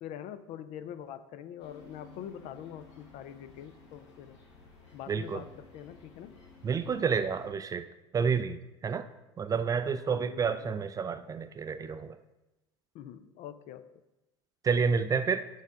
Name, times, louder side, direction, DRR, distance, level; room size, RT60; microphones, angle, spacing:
voice 1, 0.0-4.4 4.9-6.3 10.1-10.8 12.9-14.0, left 10 dB, 50° left, 12 dB, 0.5 m, -44 dB
sound 1, 1.6-7.5, left 3 dB, 85° left, 1.5 m, -55 dB
voice 2, 5.1-5.4 6.6-7.9 8.1-9.1 9.4-12.2 14.6-15.5, right 6 dB, 25° right, 11 dB, 0.4 m, -29 dB
6.4 x 3.5 x 5.1 m, 1.0 s
hypercardioid pair, 85°, 15 cm